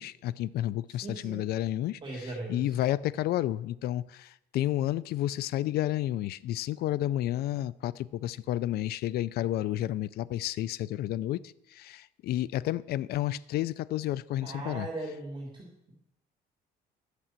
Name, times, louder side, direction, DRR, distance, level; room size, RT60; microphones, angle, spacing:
voice 1, 0.0-2.0 2.5-14.9, left 13 dB, 70° left, 0.5 m, -31 dB
voice 2, 0.9-1.4 2.0-2.7 14.4-15.9, right 2 dB, 30° right, 3.2 m, -39 dB
11.5 x 6.8 x 7.4 m
cardioid pair, 110°, 17 cm